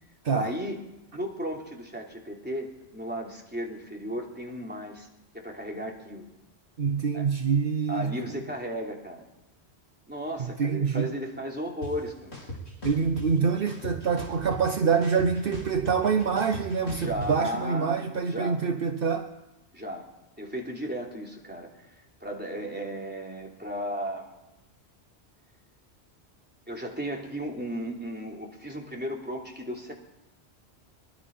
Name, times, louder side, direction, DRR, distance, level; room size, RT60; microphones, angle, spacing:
voice 1, 0.3-0.8 1.1-5.1 5.3-6.3 7.1-7.2 7.9-9.2 10.1-12.5 16.9-18.6 19.7-20.1 20.4-24.4 26.7-29.9, equal, 10° right, 3.4 m, -35 dB
voice 2, 6.8-8.1 10.6-11.1 12.8-19.3, right 6 dB, 60° right, 1.0 m, -26 dB
sound 1, 11.8-11.9 12.3-13.3 13.7-14.7 15.0-17.3, left 2 dB, 85° left, 5.2 m, -38 dB
23.0 x 21.5 x 5.5 m
omnidirectional pair, 1.1 m